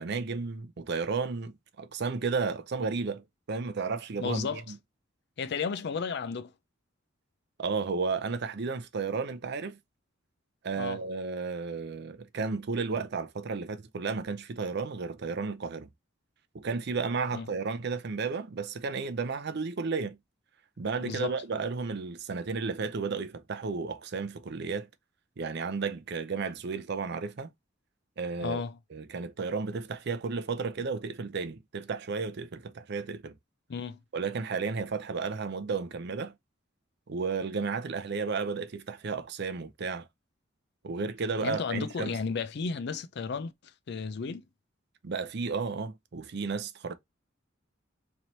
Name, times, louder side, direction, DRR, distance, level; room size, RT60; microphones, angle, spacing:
voice 1, 0.0-3.2 3.5-4.8 7.6-9.8 10.6-15.9 16.5-20.2 20.8-24.9 25.4-27.5 28.2-28.6 28.9-33.4 34.1-36.3 37.1-40.1 40.8-42.2 45.0-46.9, right 4 dB, 55° right, 0.5 m, -33 dB
voice 2, 4.2-4.6 5.4-6.5 10.8-11.0 17.3-17.5 21.0-21.4 28.4-28.8 33.7-34.0 41.4-43.5 43.9-44.4, left 5 dB, 55° left, 0.4 m, -33 dB
3.2 x 2.9 x 4.0 m
head